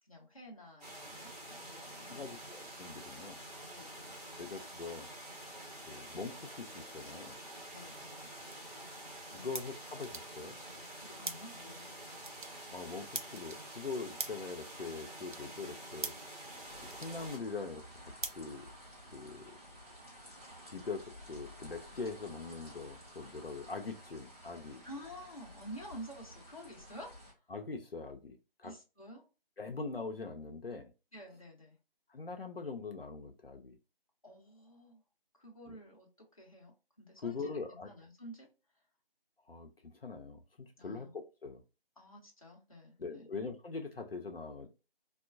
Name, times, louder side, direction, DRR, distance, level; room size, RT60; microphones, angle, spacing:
voice 1, 0.0-2.4 3.7-4.2 7.7-8.4 9.3-9.5 10.9-11.9 24.8-27.2 28.6-29.2 31.1-31.8 34.2-35.0 35.4-37.5 37.8-38.5 40.8-41.1 42.0-43.3, equal, 35° left, 0.8 m, -50 dB
sound 1, 0.8-17.4, right 1 dB, 40° right, 1.1 m, -48 dB
voice 2, 2.1-3.4 4.4-5.1 5.9-7.4 9.3-10.6 12.7-16.1 16.9-18.7 19.1-19.5 20.7-24.8 27.5-28.7 29.6-30.9 32.1-33.8 35.7-35.8 37.2-37.9 39.5-41.6 43.0-44.7, left 4 dB, 75° left, 0.6 m, -42 dB
sound 2, 7.7-19.2, right 3 dB, 55° right, 0.5 m, -48 dB
sound 3, 16.6-27.3, equal, 15° right, 1.0 m, -53 dB
3.5 x 2.4 x 2.4 m
figure-of-eight pair, 165°, 30 cm